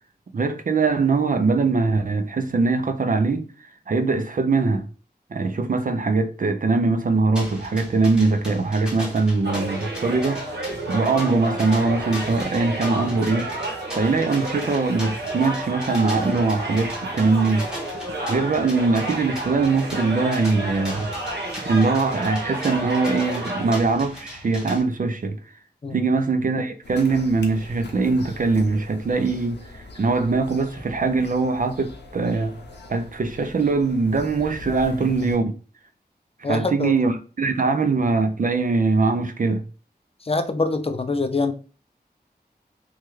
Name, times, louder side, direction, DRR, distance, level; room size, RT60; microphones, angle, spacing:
voice 1, 0.3-3.5 3.9-4.9 5.3-13.5 13.9-17.7 18.3-21.1 21.6-25.4 25.9-32.5 32.9-35.5 36.4-39.6, right 3 dB, 50° right, 0.4 m, -22 dB
sound 1, 7.4-24.8, equal, 5° right, 1.3 m, -39 dB
sound 2, 9.4-23.8, right 1 dB, 80° right, 0.9 m, -30 dB
sound 3, 26.8-35.4, left 2 dB, 90° left, 0.7 m, -42 dB
voice 2, 36.4-36.9 40.2-41.5, left 3 dB, 35° left, 0.4 m, -25 dB
3.1 x 2.3 x 3.0 m
wide cardioid pair, 85°, 17 cm